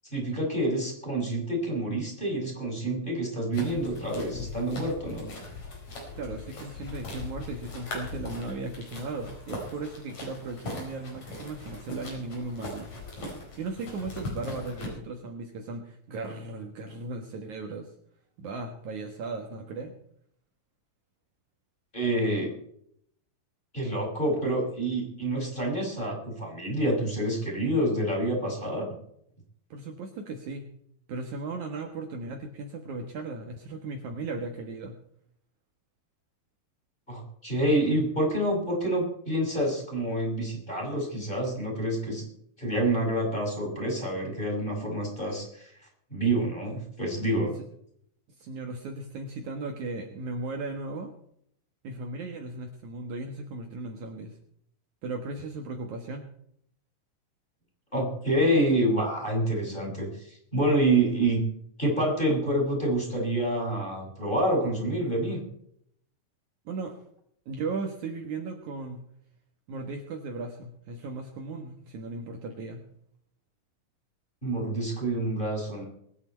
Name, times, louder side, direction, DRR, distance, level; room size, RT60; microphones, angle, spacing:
voice 1, 0.1-5.3 21.9-22.5 23.7-28.9 37.1-42.3 42.6-45.7 46.1-47.6 57.9-61.4 61.8-65.4 74.4-75.8, right 1 dB, 15° left, 1 dB, 6.0 m, -27 dB
sound 1, 3.5-14.9, left 2 dB, 50° left, 5.8 m, -40 dB
voice 2, 6.2-12.9 13.6-17.9 18.4-19.9 29.7-30.7 31.1-35.0 48.4-51.1 51.8-54.4 55.0-56.3 66.7-66.9 67.5-69.0 69.7-72.8, right 3 dB, 60° right, 3 dB, 2.7 m, -36 dB
23.0 x 10.0 x 4.5 m, 0.69 s
omnidirectional pair, 4.0 m